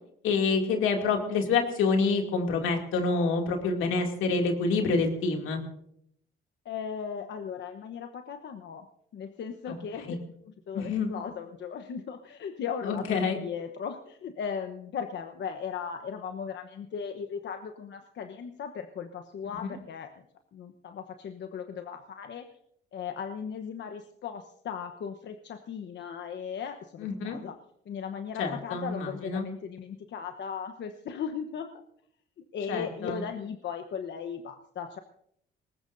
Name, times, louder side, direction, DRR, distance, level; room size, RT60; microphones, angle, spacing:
voice 1, 0.2-5.6 9.7-9.8 10.1-10.2 10.7-11.1 12.8-13.4 27.0-27.4 28.4-29.5 32.7-33.2, left 4 dB, 90° left, 3 dB, 2.7 m, -27 dB
voice 2, 6.6-8.9 9.1-20.1 20.5-22.4 22.9-27.6 27.9-31.8 32.5-35.0, left 7 dB, 65° left, 6 dB, 1.1 m, -37 dB
20.0 x 19.0 x 2.7 m, 0.69 s
cardioid pair, 90°, 20 cm